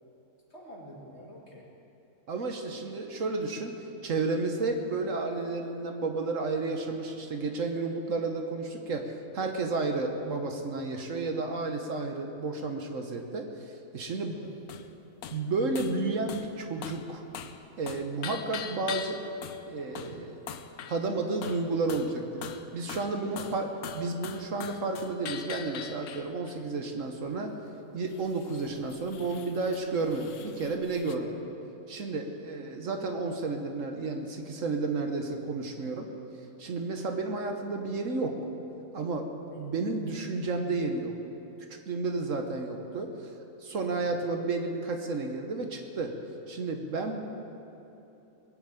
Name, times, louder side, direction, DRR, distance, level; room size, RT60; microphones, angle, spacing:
voice 1, 0.5-1.7 14.3-14.5 23.2-23.5 31.2-31.4 39.5-39.7 47.0-47.1, equal, 45° left, -3 dB, 2.9 m, -48 dB
voice 2, 2.3-3.8 4.0-14.4 15.3-17.2 17.8-19.2 19.7-20.4 20.9-22.3 22.7-23.7 23.9-27.5 27.9-31.3 31.9-36.1 36.6-38.4 38.9-39.3 39.6-41.1 41.7-43.1 43.6-46.1 46.5-47.2, right 3 dB, 60° right, 4 dB, 1.5 m, -32 dB
sound 1, 14.7-14.9 15.2-15.4 15.8-16.0 16.3-16.5 16.8-17.1 17.3-17.6 17.9-19.7 20.0-20.2 20.5-21.1 21.4-22.2 22.4-26.6 28.1-31.2, left 8 dB, 85° left, 1.2 m, -42 dB
20.5 x 7.2 x 8.9 m, 3.0 s
omnidirectional pair, 1.5 m